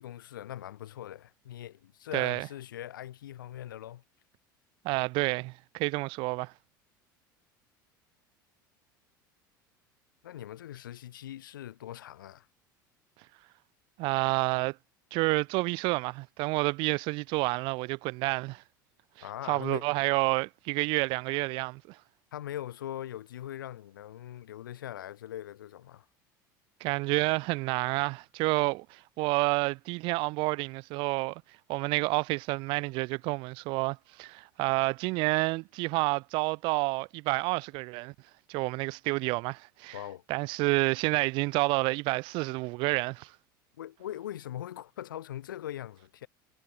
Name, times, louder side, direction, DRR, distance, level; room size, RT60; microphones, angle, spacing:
voice 1, 0.0-4.0 10.2-12.5 19.2-19.9 22.3-26.0 39.9-40.2 43.8-46.3, left 12 dB, 75° left, 1.3 m, -41 dB
voice 2, 2.1-2.5 4.8-6.5 14.0-14.8 15.1-18.6 19.5-22.0 26.8-31.4 31.7-38.1 38.5-40.0 40.3-43.3, right 25 dB, 50° right, 0.3 m, -29 dB
figure-of-eight pair, 70°, 11 cm